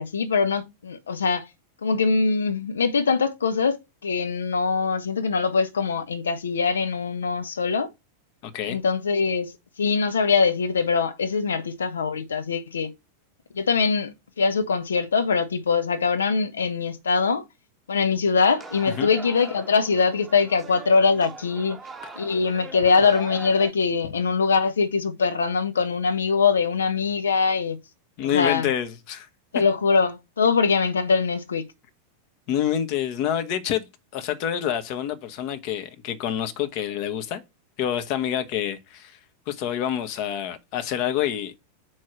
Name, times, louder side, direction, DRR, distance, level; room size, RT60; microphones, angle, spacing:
voice 1, 0.0-1.5 1.8-7.9 8.7-9.5 9.8-12.9 13.5-17.4 17.9-21.8 22.2-27.8 28.2-28.7 29.5-31.6, left 5 dB, 70° left, 0.7 m, -23 dB
voice 2, 8.4-8.8 19.0-19.1 28.2-29.3 29.5-29.6 32.5-33.9 34.1-37.4 37.8-39.2 39.5-41.5, left 10 dB, 45° left, 1.0 m, -27 dB
sound 1, 18.3-23.7, right 3 dB, 10° right, 0.8 m, -41 dB
4.7 x 4.5 x 5.8 m
figure-of-eight pair, 90°, 0 cm